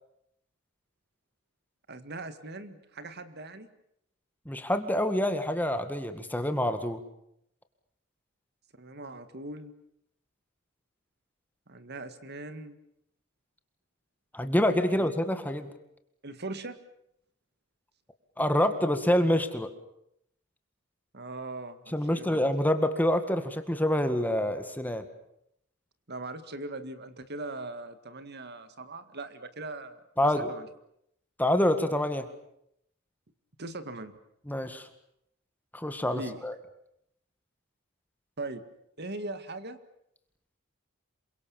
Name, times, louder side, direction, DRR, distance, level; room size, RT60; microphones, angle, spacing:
voice 1, 1.9-3.7 8.8-9.7 11.7-12.8 14.9-15.1 16.2-16.8 21.1-22.4 26.1-30.7 33.6-34.2 36.1-36.4 38.4-38.6 39.0-39.8, right 2 dB, 50° right, 11 dB, 1.9 m, -40 dB
voice 2, 4.5-7.0 14.3-15.7 18.4-19.7 21.9-25.0 30.2-30.5 31.4-32.3 34.5-34.9 35.7-36.5, left 1 dB, 10° left, 8 dB, 1.9 m, -26 dB
27.5 x 24.0 x 7.3 m, 0.75 s
head